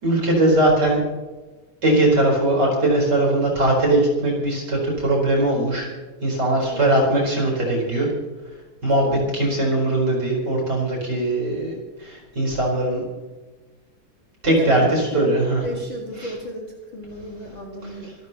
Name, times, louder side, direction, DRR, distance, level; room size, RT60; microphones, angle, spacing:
voice 1, 0.0-1.0 1.8-5.9 6.2-8.1 8.8-13.0 14.4-15.6, right 1 dB, 30° right, -2 dB, 5.0 m, -20 dB
voice 2, 9.0-9.4 14.4-15.4 15.6-18.1, equal, 40° left, -2 dB, 2.4 m, -33 dB
26.5 x 13.5 x 3.1 m, 1.2 s
omnidirectional pair, 4.1 m